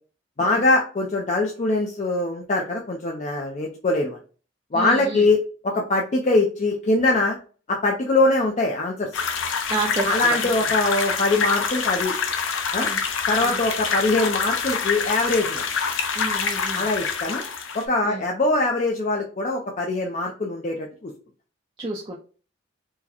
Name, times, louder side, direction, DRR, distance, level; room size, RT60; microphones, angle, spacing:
voice 1, 0.4-4.2 4.7-7.4 7.7-9.1 10.0-12.1 12.7-12.9 13.3-15.7 16.7-17.4 17.7-21.1, left 2 dB, 40° left, 0 dB, 0.5 m, -22 dB
voice 2, 4.7-5.3 9.7-10.1 10.4-10.6 12.8-13.0 13.4-13.6 16.2-16.9 18.1-18.2 21.8-22.2, right 3 dB, 25° right, -1 dB, 0.4 m, -30 dB
sound 1, 9.1-17.8, left 5 dB, 85° left, 0.6 m, -26 dB
4.6 x 2.1 x 2.8 m, 0.38 s
head